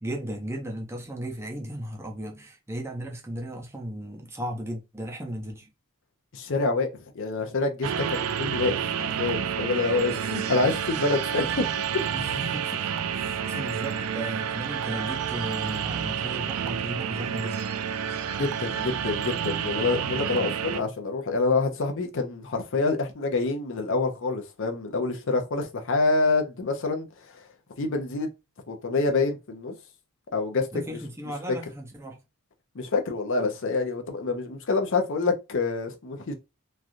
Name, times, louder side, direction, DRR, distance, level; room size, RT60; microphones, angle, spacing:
voice 1, 0.0-5.7 12.1-17.7 30.7-32.2, right 1 dB, 10° right, 0.6 m, -36 dB
voice 2, 6.3-6.9 7.1-11.7 18.4-27.1 27.8-28.3 28.7-29.7 30.3-31.0 31.5-31.6 32.7-36.3, left 3 dB, 60° left, 0.6 m, -27 dB
sound 1, 7.8-20.8, right 8 dB, 75° right, 0.4 m, -29 dB
3.2 x 2.4 x 2.5 m
head